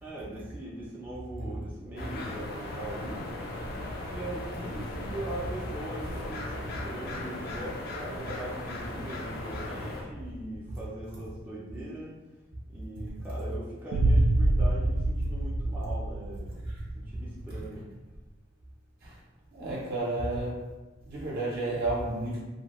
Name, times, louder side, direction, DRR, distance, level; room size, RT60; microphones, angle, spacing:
voice 1, 0.0-3.4 4.1-12.2 12.7-16.7 16.9-17.9, right 1 dB, 10° right, 0.4 m, -40 dB
sound 1, 2.0-10.0, left 2 dB, 55° left, 0.5 m, -38 dB
sound 2, 13.9-16.9, right 1 dB, 85° right, 0.3 m, -25 dB
voice 2, 19.5-20.6 21.1-22.4, right 2 dB, 55° right, 0.6 m, -31 dB
2.8 x 2.1 x 2.9 m
head